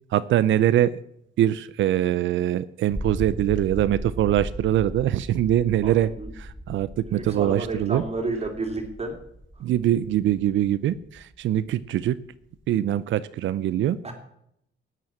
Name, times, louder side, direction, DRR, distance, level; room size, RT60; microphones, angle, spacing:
voice 1, 0.1-1.0 1.4-6.1 6.4-8.0 9.6-12.2 12.7-14.0, right 12 dB, 75° right, 16 dB, 0.6 m, -23 dB
sound 1, 2.9-13.0, equal, ahead, 0.8 m, -38 dB
voice 2, 5.8-6.3 7.0-9.2 9.6-9.7 14.0-14.1, right 3 dB, 30° right, 3 dB, 2.9 m, -31 dB
12.5 x 9.4 x 7.4 m, 0.75 s
cardioid pair, 90°, 20 cm